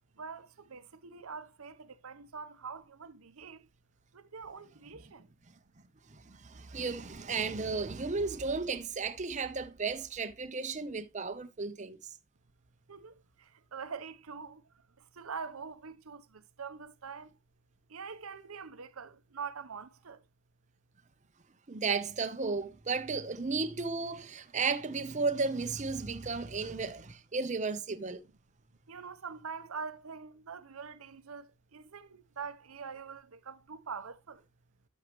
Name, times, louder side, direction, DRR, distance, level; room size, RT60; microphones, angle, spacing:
voice 1, 0.2-3.7 4.1-5.3 12.9-14.6 15.0-17.3 17.9-20.2 28.9-34.4, right 5 dB, 85° right, 0.8 m, -44 dB
voice 2, 6.1-12.0 21.7-28.2, right 4 dB, 35° right, 0.7 m, -34 dB
11.5 x 6.4 x 3.0 m
head